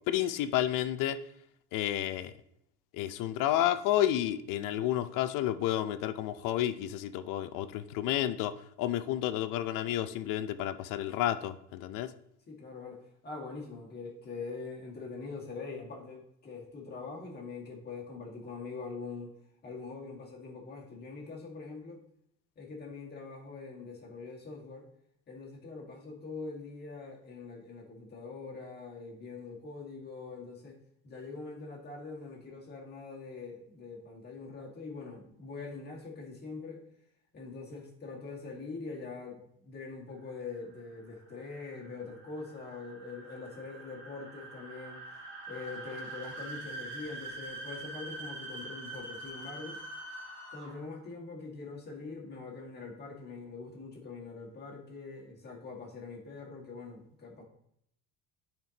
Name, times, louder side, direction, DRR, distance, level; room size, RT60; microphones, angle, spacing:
voice 1, 0.1-1.2 1.7-2.3 2.9-8.5 8.8-12.1, left 12 dB, 65° left, 12 dB, 0.6 m, -30 dB
voice 2, 12.5-19.3 19.6-22.0 22.6-24.9 25.3-30.8 31.0-36.8 37.3-45.0 45.5-49.8 50.5-57.4, left 4 dB, 30° left, -1 dB, 1.7 m, -43 dB
sound 1, 40.3-51.0, right 2 dB, 35° right, 1.6 m, -44 dB
10.5 x 4.5 x 2.9 m, 0.73 s
cardioid pair, 145°, 35 cm